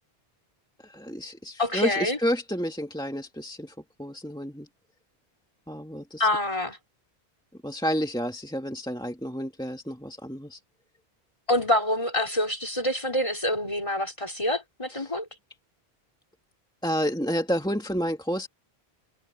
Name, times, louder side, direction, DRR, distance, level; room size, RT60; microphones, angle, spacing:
voice 1, 0.8-4.7 5.7-6.3 7.6-10.6 14.9-15.1 16.8-18.5, equal, 5° left, 2.0 m, -30 dB
voice 2, 1.6-2.2 6.2-6.8 11.5-15.2, left 1 dB, 30° left, 4.8 m, -26 dB
omnidirectional pair, 1.1 m